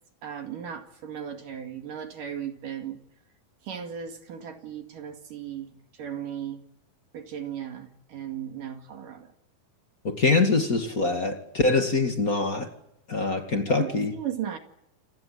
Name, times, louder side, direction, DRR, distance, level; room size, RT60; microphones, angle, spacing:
voice 1, 0.2-3.0 3.6-6.6 7.1-9.3 13.8-14.6, right 9 dB, 65° right, 6 dB, 3.6 m, -36 dB
voice 2, 10.0-12.7 13.1-14.1, left 3 dB, 30° left, 6 dB, 1.9 m, -24 dB
28.5 x 21.0 x 7.8 m, 0.80 s
omnidirectional pair, 4.3 m